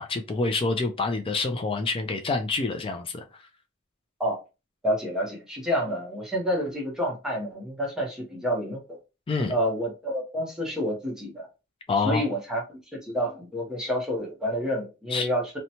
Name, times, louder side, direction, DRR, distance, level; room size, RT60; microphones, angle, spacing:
voice 1, 0.0-3.2 9.3-9.5 11.9-12.2 15.1-15.3, left 3 dB, 25° left, 0.3 m, -27 dB
voice 2, 4.8-9.0 9.5-11.5 12.0-15.4, equal, 5° right, 0.8 m, -29 dB
2.8 x 2.1 x 2.7 m
head